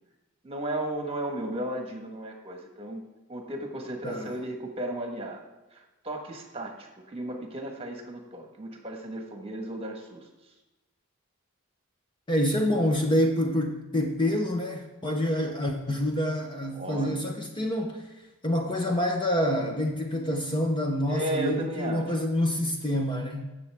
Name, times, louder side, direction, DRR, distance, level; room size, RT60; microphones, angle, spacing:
voice 1, 0.4-3.0 3.3-5.4 5.7-10.2 16.7-17.1 21.1-22.2, right 1 dB, 25° right, 2 dB, 1.4 m, -34 dB
voice 2, 12.3-18.0 18.4-23.4, left 1 dB, 20° left, 3 dB, 0.7 m, -27 dB
17.0 x 6.8 x 3.5 m, 1.1 s
head